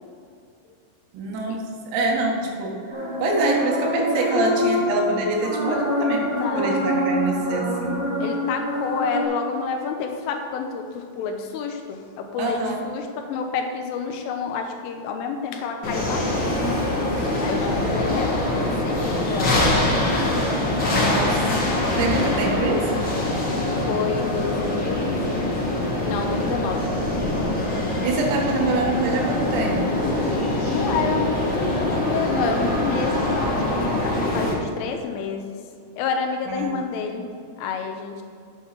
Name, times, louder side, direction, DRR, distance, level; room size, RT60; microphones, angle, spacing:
voice 1, 1.1-2.8 3.2-6.2 6.5-8.1 12.4-12.8 21.0-21.5 22.0-23.1 28.0-29.8 36.5-36.8, right 2 dB, 85° right, -1 dB, 4.4 m, -25 dB
sound 1, 2.9-9.2, equal, 35° right, 3.3 m, -25 dB
voice 2, 6.4-6.8 8.2-16.6 16.9-17.0 17.4-20.4 23.4-23.5 23.9-25.5 26.0-28.1 30.6-35.6 36.0-37.3 37.6-38.2, left 5 dB, 80° left, 4 dB, 3.3 m, -29 dB
sound 2, 15.8-34.5, left 1 dB, 60° left, 1.1 m, -23 dB
9.4 x 8.4 x 5.8 m, 2.4 s
omnidirectional pair, 5.8 m